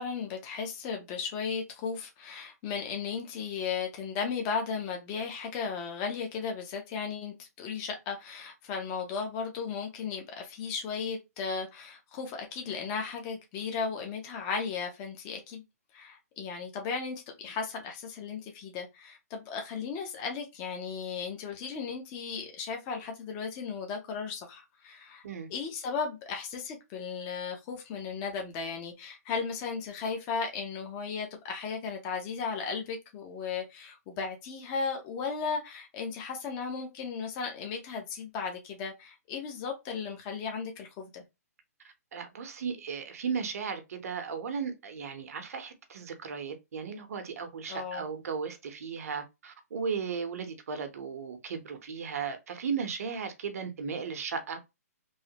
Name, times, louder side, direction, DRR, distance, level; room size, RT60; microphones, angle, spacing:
voice 1, 0.0-15.6 15.9-25.2 25.5-41.2 47.7-48.0, left 5 dB, 25° left, 0.6 m, -35 dB
voice 2, 42.1-54.6, right 6 dB, 65° right, 0.8 m, -36 dB
3.1 x 2.0 x 2.8 m
hypercardioid pair, 155°, 9 cm